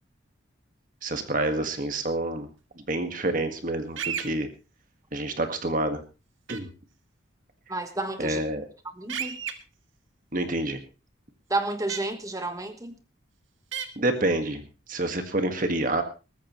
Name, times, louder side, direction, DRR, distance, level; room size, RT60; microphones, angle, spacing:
voice 1, 1.0-2.5 2.9-4.5 5.1-6.0 6.5-6.7 8.2-8.6 10.3-10.8 13.9-16.0, right 2 dB, 40° right, 7 dB, 1.8 m, -28 dB
sound 1, 4.0-4.3 6.5-6.6 9.1-9.5 11.9-12.0 13.7-13.9, right 8 dB, 80° right, 1.7 m, -31 dB
voice 2, 7.7-8.4 8.9-9.4 11.5-13.0, right 2 dB, 15° right, 8 dB, 1.2 m, -31 dB
21.0 x 14.0 x 3.1 m, 0.31 s
head